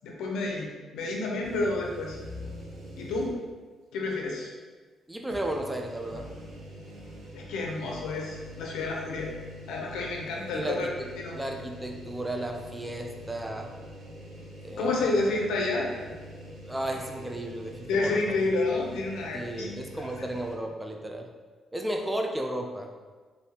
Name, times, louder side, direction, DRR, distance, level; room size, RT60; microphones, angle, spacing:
voice 1, 0.0-2.2 3.0-3.4 3.9-4.5 7.3-9.3 9.7-10.9 11.2-11.4 14.8-15.9 17.9-20.0, left 3 dB, 80° left, -1 dB, 0.6 m, -29 dB
sound 1, 1.4-3.6 4.0-4.1 5.2-20.6, equal, 75° right, 0.7 m, -44 dB
voice 2, 5.1-6.3 10.3-11.1 11.3-13.7 14.6-15.1 16.7-18.4 19.3-21.3 21.7-22.9, right 1 dB, 10° right, 3 dB, 0.4 m, -34 dB
3.4 x 2.6 x 2.8 m, 1.4 s
cardioid pair, 90°, 0 cm